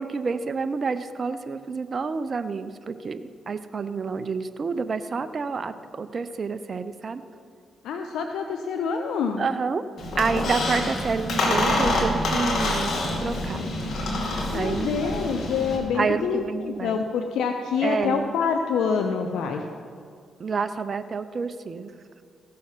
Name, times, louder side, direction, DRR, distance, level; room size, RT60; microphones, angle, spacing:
voice 1, 0.0-7.2 9.4-9.8 10.2-12.9 13.2-13.6 14.5-15.3 15.9-17.0 17.8-18.3 20.4-21.9, right 5 dB, 50° right, 11 dB, 0.6 m, -28 dB
voice 2, 7.8-9.5 14.5-19.6, left 6 dB, 80° left, 5 dB, 0.6 m, -26 dB
Squeak, 10.0-15.8, left 1 dB, 65° left, 2.2 m, -26 dB
16.0 x 6.4 x 5.7 m, 2.2 s
supercardioid pair, 50°, 0 cm